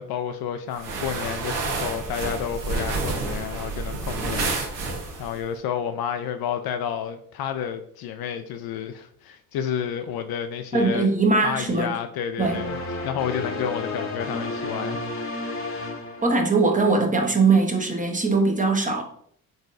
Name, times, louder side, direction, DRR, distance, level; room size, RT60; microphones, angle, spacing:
voice 1, 0.0-11.1 11.4-12.8 13.0-15.0, left 8 dB, 55° left, 0.5 m, -30 dB
sound 1, 0.7-5.4, right 3 dB, 65° right, 1.1 m, -29 dB
voice 2, 10.7-11.9 12.4-12.6 16.2-19.0, right 3 dB, 15° right, 0.9 m, -21 dB
sound 2, 12.4-16.9, left 2 dB, 30° left, 1.0 m, -32 dB
4.0 x 3.9 x 2.5 m
hypercardioid pair, 55°, 46 cm